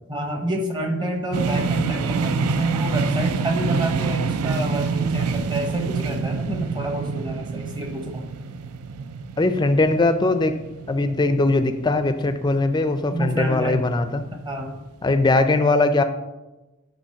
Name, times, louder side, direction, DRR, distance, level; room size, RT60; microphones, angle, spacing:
voice 1, 0.1-8.2 13.1-13.8 14.3-14.7, right 1 dB, 20° right, 3 dB, 0.8 m, -28 dB
sound 1, 1.3-13.1, right 5 dB, 85° right, 0.4 m, -27 dB
voice 2, 9.4-10.6 10.9-14.3 15.0-16.0, left 2 dB, 20° left, 9 dB, 0.4 m, -20 dB
8.2 x 3.0 x 5.7 m, 1.1 s
head